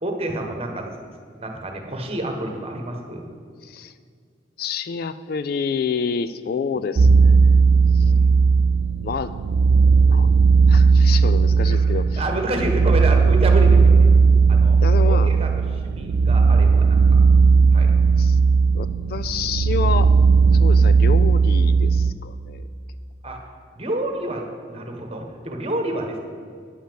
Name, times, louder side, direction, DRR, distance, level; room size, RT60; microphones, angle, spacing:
voice 1, 0.0-0.9 1.4-3.2 6.7-6.8 8.0-8.4 11.6-14.0 14.5-14.8 15.1-17.2 17.7-17.9 23.2-23.4 23.7-26.2, right 1 dB, 30° right, 3 dB, 1.2 m, -29 dB
voice 2, 3.6-3.9 4.6-7.6 7.9-8.1 9.0-9.3 10.1-10.3 10.7-12.2 14.8-15.3 18.2-18.4 18.7-20.1 20.5-22.6, left 6 dB, 55° left, 13 dB, 0.3 m, -28 dB
sound 1, 7.0-22.1, right 5 dB, 60° right, 0.3 m, -16 dB
10.0 x 5.6 x 7.5 m, 2.2 s
head